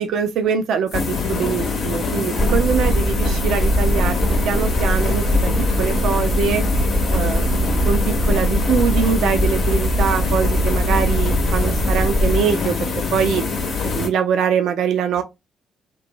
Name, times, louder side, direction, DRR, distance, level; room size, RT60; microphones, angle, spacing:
voice 1, 0.0-4.2 4.4-5.5 5.8-6.6 7.1-13.4 13.9-15.2, right 7 dB, 60° right, 0.4 m, -23 dB
sound 1, 0.9-14.1, left 4 dB, 55° left, 0.8 m, -24 dB
sound 2, 2.4-12.4, right 1 dB, 15° right, 0.6 m, -21 dB
3.0 x 2.2 x 2.5 m
figure-of-eight pair, 40°, 0 cm